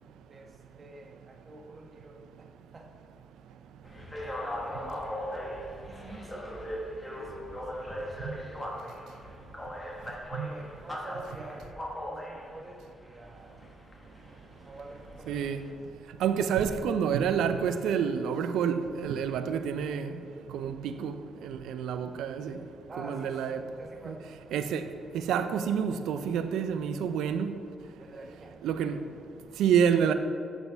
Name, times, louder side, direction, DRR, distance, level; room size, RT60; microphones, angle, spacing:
voice 1, 0.3-2.9 4.4-5.3 5.8-6.7 7.1-9.0 10.3-13.6 14.6-15.6 22.9-24.2 28.0-28.5, right 2 dB, 40° right, 1.1 m, -48 dB
sound 1, 3.8-15.7, equal, 20° left, 1.4 m, -39 dB
voice 2, 15.3-15.6 16.2-20.1 20.5-21.1 21.4-22.6 23.0-23.6 24.1-24.2 24.5-24.8 25.1-27.5 28.6-29.0 29.6-30.1, right 7 dB, 85° right, 0.4 m, -28 dB
8.1 x 6.4 x 3.4 m
supercardioid pair, 65°, 0 cm